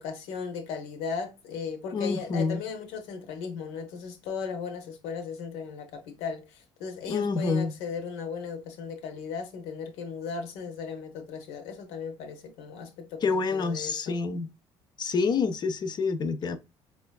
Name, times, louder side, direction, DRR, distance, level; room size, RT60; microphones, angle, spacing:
voice 1, 0.0-14.2, left 5 dB, 80° left, 0.7 m, -37 dB
voice 2, 1.9-2.6 7.1-7.7 13.2-14.5 15.0-16.6, left 4 dB, 40° left, 0.5 m, -27 dB
4.3 x 2.4 x 2.2 m
supercardioid pair, 80°, 11 cm